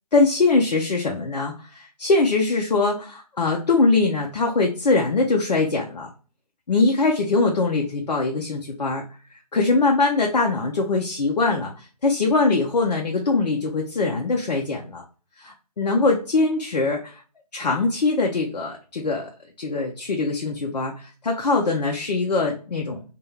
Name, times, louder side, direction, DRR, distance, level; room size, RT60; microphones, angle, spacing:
voice 1, 0.1-6.1 6.7-9.0 9.5-15.0 15.4-17.2 17.5-19.3 19.6-23.0, left 3 dB, 85° left, 0 dB, 0.6 m, -22 dB
2.2 x 2.2 x 3.0 m, 0.37 s
hypercardioid pair, 155°, 21 cm